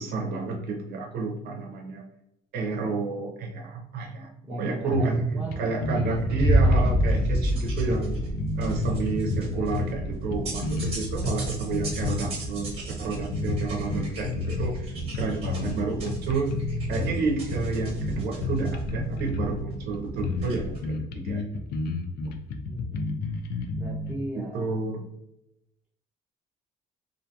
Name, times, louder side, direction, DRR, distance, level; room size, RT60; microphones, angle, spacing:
voice 1, 0.0-2.1 2.5-8.2 8.6-12.7 13.0-16.6 16.9-21.4 22.2-22.3 24.3-25.0, right 4 dB, 70° right, 1 dB, 0.6 m, -30 dB
voice 2, 4.4-5.7 22.7-23.0 23.8-24.8, right 1 dB, 10° right, -3 dB, 0.8 m, -36 dB
sound 1, 4.9-5.3 5.5-5.6 5.8-7.5 7.9-10.0 10.3-12.2 12.6-12.8 13.2-14.8 15.1-15.8 16.1-17.1 17.5-19.6 19.9-20.0 20.2-20.5 20.8-24.1, left 4 dB, 70° left, 0.5 m, -31 dB
sound 2, 6.1-20.8, right 2 dB, 35° right, 1.0 m, -36 dB
sound 3, 6.4-13.8, equal, 45° left, 1.3 m, -27 dB
2.5 x 2.2 x 2.7 m, 0.86 s
cardioid pair, 110°, 17 cm